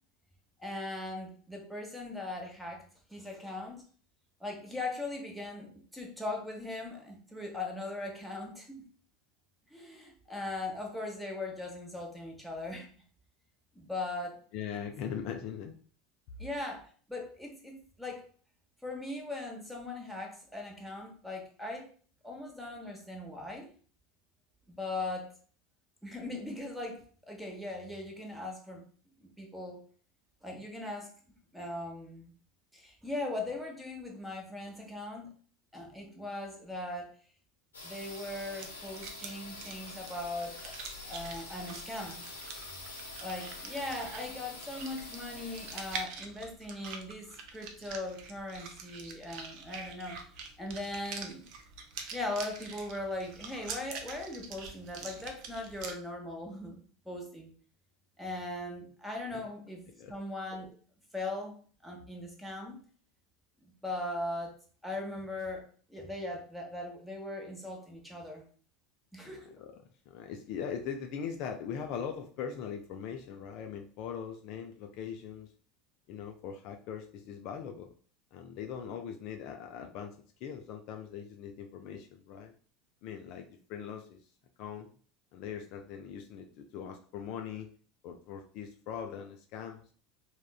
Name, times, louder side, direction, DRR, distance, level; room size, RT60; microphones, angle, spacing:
voice 1, 0.6-2.8 3.1-3.8 4.4-8.8 9.7-12.9 13.7-14.4 14.7-14.8 16.4-18.3 18.8-21.9 22.2-23.7 24.7-25.3 26.0-28.8 29.2-29.8 30.4-31.1 31.5-32.3 32.7-35.3 35.7-37.1 37.8-40.7 41.0-42.3 43.2-50.2 50.6-51.5 52.1-57.5 58.2-60.8 61.1-61.6 61.8-62.8 63.8-64.5 64.8-68.4 69.1-69.6, left 2 dB, ahead, 0 dB, 0.8 m, -39 dB
voice 2, 14.5-15.7 60.0-60.1 69.2-69.8 70.1-75.5 76.1-77.9 78.3-80.2 80.4-82.5 83.0-84.2 84.6-84.9 85.3-87.7 88.0-89.8, left 7 dB, 50° left, 4 dB, 0.3 m, -41 dB
sound 1, 37.7-46.0, left 2 dB, 75° left, 0.7 m, -46 dB
sound 2, 38.4-55.9, right 5 dB, 50° right, 0.4 m, -46 dB
3.5 x 2.1 x 2.3 m, 0.43 s
figure-of-eight pair, 75°, 0 cm